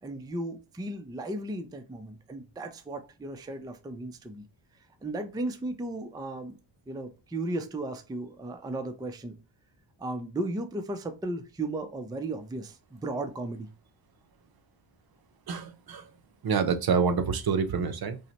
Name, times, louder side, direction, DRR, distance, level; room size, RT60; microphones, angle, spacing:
voice 1, 0.0-4.5 5.0-6.6 6.9-9.4 10.0-13.7, right 2 dB, 10° right, 0.4 m, -35 dB
voice 2, 15.5-16.1 16.4-18.2, right 6 dB, 50° right, 0.6 m, -27 dB
5.5 x 2.1 x 2.9 m
cardioid pair, 85°, 47 cm